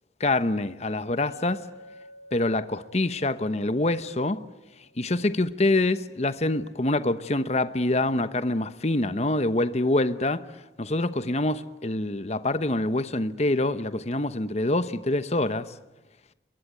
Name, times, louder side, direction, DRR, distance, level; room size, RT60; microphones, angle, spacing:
voice 1, 0.2-1.7 2.3-4.4 5.0-10.5 10.8-15.7, left 2 dB, 35° left, 1.0 m, -25 dB
Chink clink, 1.2-5.4, left 1 dB, 60° left, 4.5 m, -51 dB
28.0 x 22.0 x 9.0 m
head